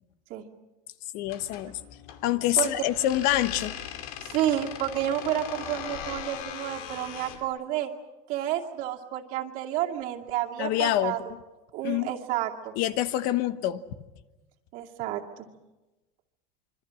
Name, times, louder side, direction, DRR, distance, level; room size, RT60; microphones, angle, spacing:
voice 1, 1.1-1.7 2.2-3.7 10.6-11.2 11.8-12.1 12.7-13.8, left 13 dB, 55° left, 12 dB, 1.2 m, -26 dB
sound 1, 1.2-7.5, left 9 dB, 85° left, 2.7 m, -40 dB
voice 2, 4.2-7.9 8.3-11.2 11.7-12.7 14.7-15.5, right 12 dB, 55° right, 1 dB, 2.4 m, -30 dB
26.5 x 24.5 x 6.4 m, 1.1 s
cardioid pair, 170°, 17 cm